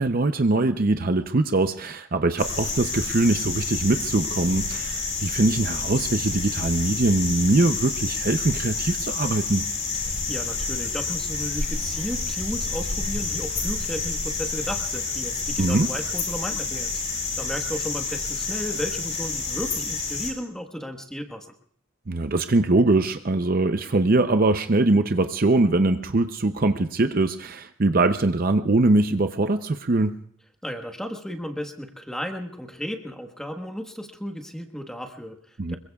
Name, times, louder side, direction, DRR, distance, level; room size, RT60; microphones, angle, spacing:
voice 1, 0.0-9.6 15.6-15.9 22.1-30.2 35.6-35.8, right 2 dB, 45° right, 8 dB, 0.6 m, -22 dB
sound 1, 2.4-20.3, left 4 dB, 35° left, 6.2 m, -29 dB
voice 2, 9.9-21.5 30.6-35.8, equal, 5° left, 4 dB, 1.3 m, -34 dB
26.0 x 22.5 x 2.4 m, 0.63 s
head